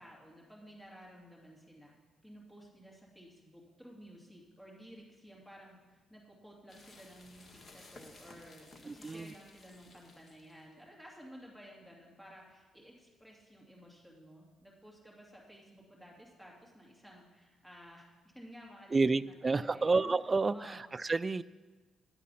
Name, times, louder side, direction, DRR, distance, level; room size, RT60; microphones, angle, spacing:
voice 1, 0.0-18.1 18.3-20.1 20.5-20.8, equal, 5° left, -3 dB, 2.6 m, -54 dB
sound 1, 6.7-10.7, left 2 dB, 30° left, 1.5 m, -56 dB
voice 2, 8.9-9.3 18.9-21.4, right 3 dB, 30° right, 16 dB, 0.3 m, -30 dB
11.0 x 8.4 x 5.6 m, 1.3 s
cardioid pair, 90°, 0 cm